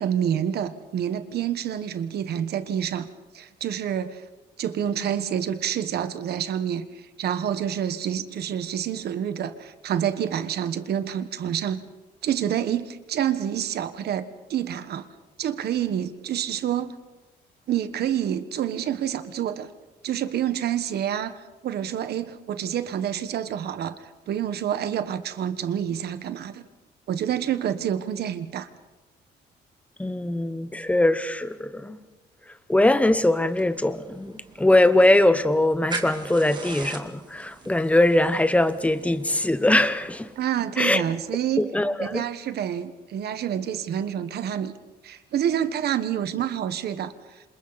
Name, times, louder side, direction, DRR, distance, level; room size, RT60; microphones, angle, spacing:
voice 1, 0.0-3.1 3.3-4.2 4.6-11.8 12.2-15.0 15.4-16.9 17.7-19.7 20.0-21.4 21.6-26.6 27.1-28.7 40.4-41.7 42.0-44.7 45.0-47.1, right 9 dB, 65° right, 1.4 m, -28 dB
voice 2, 30.0-32.0 32.7-40.3 40.8-41.0 41.6-42.3, left 1 dB, 5° left, 0.9 m, -21 dB
sound 1, 33.5-40.4, right 4 dB, 25° right, 2.2 m, -41 dB
28.5 x 27.0 x 4.2 m
cardioid pair, 145°, 18 cm